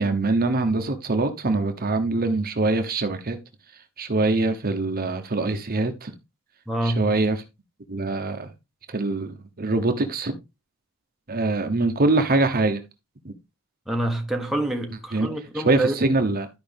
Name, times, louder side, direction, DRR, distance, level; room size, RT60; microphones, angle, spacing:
voice 1, 0.0-3.4 4.0-6.1 6.8-7.4 7.9-8.5 8.9-10.3 11.3-12.8 13.2-13.3 15.1-15.3 15.5-16.5, right 2 dB, 45° right, 1.0 m, -23 dB
voice 2, 6.7-7.1 13.9-15.9, right 1 dB, ahead, 1.3 m, -26 dB
12.5 x 5.0 x 3.5 m
head